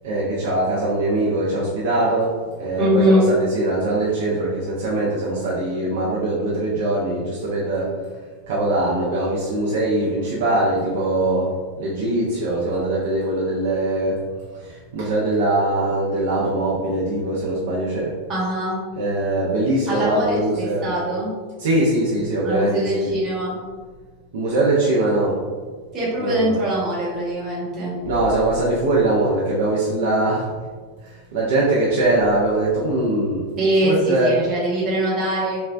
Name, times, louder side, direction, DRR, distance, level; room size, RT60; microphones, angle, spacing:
voice 1, 0.0-7.9 8.5-14.2 14.6-18.1 19.0-20.9 21.6-23.2 24.3-25.4 26.2-26.6 28.1-30.5 31.3-33.5 33.8-34.5, right 2 dB, 60° right, -6 dB, 0.5 m, -22 dB
voice 2, 2.8-3.3 18.3-18.8 19.9-21.3 22.4-23.6 25.9-28.0 33.6-35.6, right 1 dB, 30° right, -5 dB, 1.0 m, -22 dB
3.4 x 2.1 x 2.3 m, 1.5 s
figure-of-eight pair, 90°, 0 cm